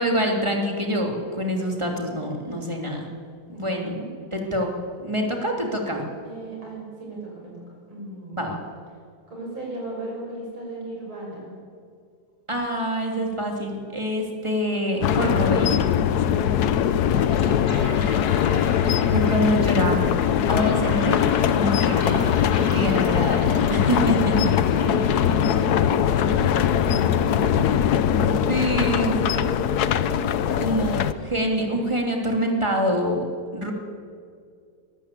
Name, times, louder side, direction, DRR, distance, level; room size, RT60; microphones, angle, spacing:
voice 1, 0.0-3.0 3.5-3.9 4.3-4.7 5.0-6.0 8.4-8.6 12.5-15.8 19.1-20.0 20.5-21.2 21.5-22.3 22.7-24.3 28.1-29.4 30.6-33.2 33.5-33.7, equal, 15° right, 1 dB, 2.9 m, -25 dB
voice 2, 3.5-4.2 6.2-7.5 7.9-8.5 9.3-11.5 16.1-18.5 20.4-20.6 24.3-28.5 28.8-30.7, right 2 dB, 85° right, -2 dB, 6.5 m, -36 dB
sound 1, 15.0-31.1, left 9 dB, 65° left, 1.1 m, -21 dB
sound 2, 17.0-31.9, left 2 dB, 80° left, 4.2 m, -38 dB
23.0 x 14.0 x 8.4 m, 2.2 s
omnidirectional pair, 2.2 m